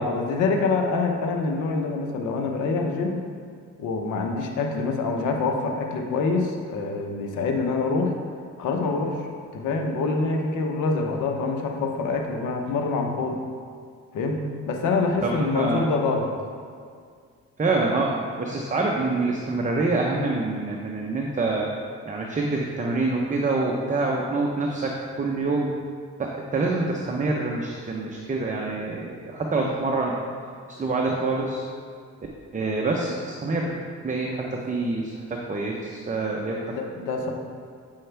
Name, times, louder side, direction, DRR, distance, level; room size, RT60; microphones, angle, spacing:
voice 1, 0.0-3.2 3.8-8.1 8.6-9.2 9.5-13.4 14.1-16.3 29.6-29.7 36.7-37.3, left 3 dB, 85° left, 3 dB, 1.0 m, -25 dB
voice 2, 15.2-15.9 17.6-21.7 22.0-25.7 26.2-30.2 30.8-31.6 32.5-36.6, right 3 dB, 25° right, -1 dB, 0.8 m, -26 dB
8.9 x 5.5 x 3.4 m, 2.1 s
cardioid pair, 90°, 30 cm